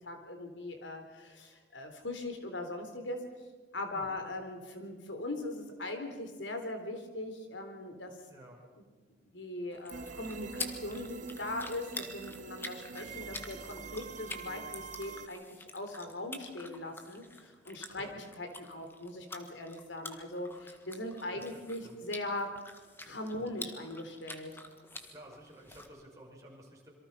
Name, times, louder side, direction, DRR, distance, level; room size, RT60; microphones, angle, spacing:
voice 1, 0.0-3.2 3.7-8.1 9.2-22.5 23.0-24.5, left 2 dB, 80° left, 6 dB, 3.8 m, -40 dB
voice 2, 8.3-8.6 17.9-18.1 21.3-22.0 23.3-23.5 25.0-26.9, right 1 dB, 20° right, -2 dB, 5.8 m, -53 dB
sound 1, 9.7-25.9, left 2 dB, 10° left, 1.7 m, -47 dB
sound 2, 9.9-15.3, right 5 dB, 40° right, 0.7 m, -45 dB
27.0 x 23.0 x 5.7 m, 1.4 s
head